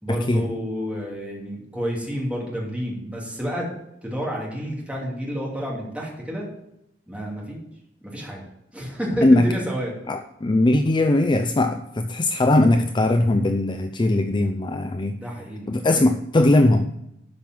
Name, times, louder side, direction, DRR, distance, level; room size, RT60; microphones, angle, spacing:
voice 1, 0.0-3.7 4.0-6.5 7.1-7.6 8.0-8.4 8.7-9.9 15.2-15.7, equal, 5° right, -3 dB, 2.8 m, -30 dB
voice 2, 10.1-15.2 15.7-16.9, left 2 dB, 25° left, 7 dB, 0.5 m, -19 dB
12.0 x 5.4 x 6.1 m, 0.81 s
head